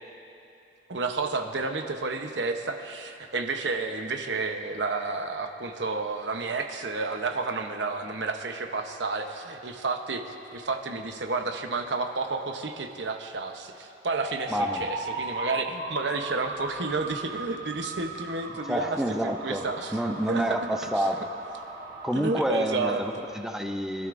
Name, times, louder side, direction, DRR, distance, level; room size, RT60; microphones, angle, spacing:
voice 1, 0.9-20.0 20.3-20.4 20.9-21.0 22.1-23.0, right 3 dB, 85° right, 5 dB, 0.9 m, -31 dB
sound 1, 14.1-23.4, right 2 dB, 60° right, 1.3 m, -38 dB
voice 2, 14.5-14.9 18.7-19.7 19.9-21.2 22.0-24.1, equal, 5° right, 4 dB, 0.5 m, -28 dB
24.0 x 12.5 x 2.6 m, 2.8 s
head